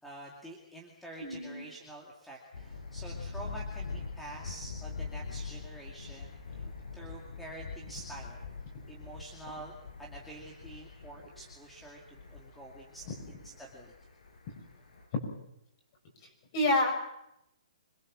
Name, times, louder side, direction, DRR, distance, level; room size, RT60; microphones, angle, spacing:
voice 1, 0.0-6.7 6.9-8.4 8.9-13.9, right 2 dB, ahead, -2 dB, 2.4 m, -48 dB
voice 2, 1.2-1.6 16.5-16.9, left 1 dB, 30° left, 2 dB, 6.8 m, -27 dB
Thunder, 2.5-15.1, left 4 dB, 85° left, 7.9 m, -44 dB
26.0 x 22.5 x 7.5 m, 0.82 s
hypercardioid pair, 170°, 4 cm